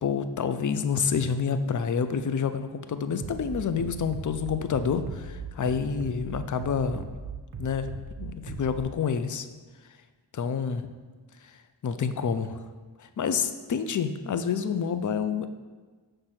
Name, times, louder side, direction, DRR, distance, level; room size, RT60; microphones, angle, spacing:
voice 1, 0.0-7.1 7.6-7.9 8.2-9.5 10.3-10.8 11.4-11.6 11.8-12.6 13.0-15.5, left 6 dB, 45° left, 10 dB, 0.4 m, -28 dB
Bass drum, 3.2-8.8, right 4 dB, 45° right, 0.6 m, -39 dB
6.2 x 3.3 x 5.8 m, 1.4 s
wide cardioid pair, 50°, 47 cm